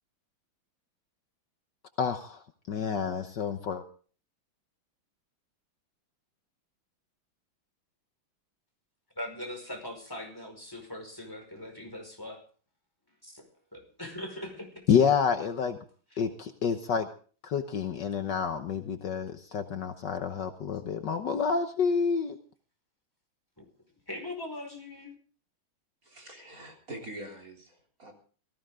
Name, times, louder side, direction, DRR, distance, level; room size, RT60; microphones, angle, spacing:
voice 1, 2.0-2.4 2.7-3.8 14.9-15.8 16.2-17.1 17.4-22.3, left 6 dB, 65° left, 7 dB, 1.6 m, -28 dB
voice 2, 9.1-12.4 13.2-13.4 13.7-14.8 23.6-23.7 24.1-25.1, left 1 dB, 10° left, 2 dB, 5.1 m, -40 dB
voice 3, 26.0-28.1, right 1 dB, 45° right, 1 dB, 3.9 m, -44 dB
19.0 x 16.0 x 3.8 m, 0.41 s
omnidirectional pair, 2.2 m